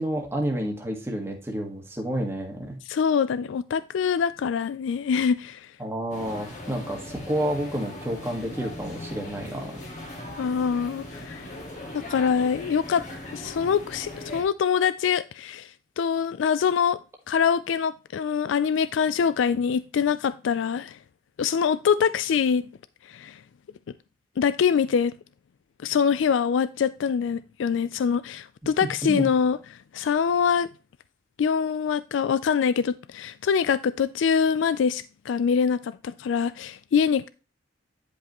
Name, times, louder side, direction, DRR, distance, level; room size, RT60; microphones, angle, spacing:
voice 1, 0.0-2.7 5.8-9.8 29.0-29.5, right 1 dB, 15° right, 1.5 m, -30 dB
voice 2, 2.9-5.7 10.4-11.4 12.1-13.1 13.3-15.7 16.0-17.0 17.3-21.0 21.4-22.6 23.1-23.4 24.4-25.1 25.8-29.6 29.9-30.7 31.4-37.3, left 7 dB, 85° left, 0.3 m, -24 dB
sound 1, 6.1-14.4, left 1 dB, 40° left, 1.7 m, -39 dB
10.0 x 5.3 x 3.0 m
head